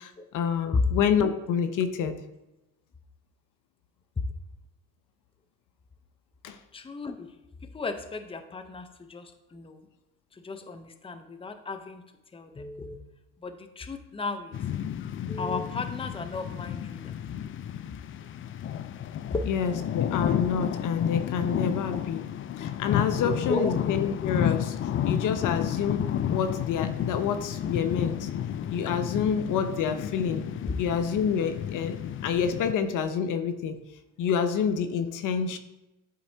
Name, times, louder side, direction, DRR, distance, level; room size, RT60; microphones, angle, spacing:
voice 1, 0.0-2.2 6.4-6.6 15.0-15.2 19.5-22.2 22.6-24.8 25.0-26.0 26.3-28.3 28.7-30.4 30.8-33.8 34.2-35.6, left 7 dB, 60° left, 9 dB, 0.7 m, -28 dB
voice 2, 6.7-7.3 7.6-9.9 10.3-12.0 12.3-13.0 13.4-14.6 15.3-17.1 19.3-19.4 21.9-22.0 23.2-23.7, left 3 dB, 15° left, 8 dB, 0.7 m, -34 dB
sound 1, 14.5-32.7, left 9 dB, 35° left, 0.4 m, -31 dB
11.5 x 4.1 x 2.8 m, 0.99 s
supercardioid pair, 70°, 36 cm